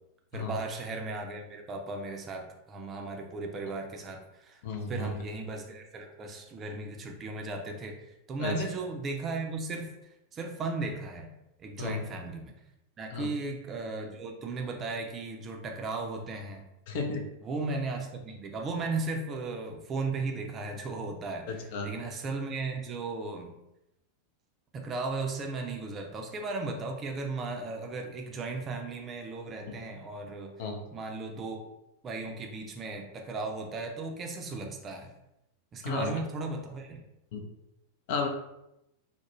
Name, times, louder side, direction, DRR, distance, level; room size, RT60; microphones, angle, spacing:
voice 1, 0.3-4.6 4.9-8.0 8.3-9.9 10.3-11.3 11.6-12.5 13.0-16.6 17.4-23.5 24.7-30.5 30.9-31.6 32.0-35.1 35.7-37.0, right 3 dB, 25° right, 2 dB, 0.4 m, -36 dB
voice 2, 4.6-5.1 8.4-8.6 11.8-12.0 13.1-13.3 16.9-17.3 21.5-21.9 30.6-30.8 35.8-36.1 37.3-37.4 38.1-38.3, left 4 dB, 50° left, 4 dB, 0.4 m, -33 dB
2.3 x 2.1 x 3.0 m, 0.87 s
figure-of-eight pair, 90°, 0 cm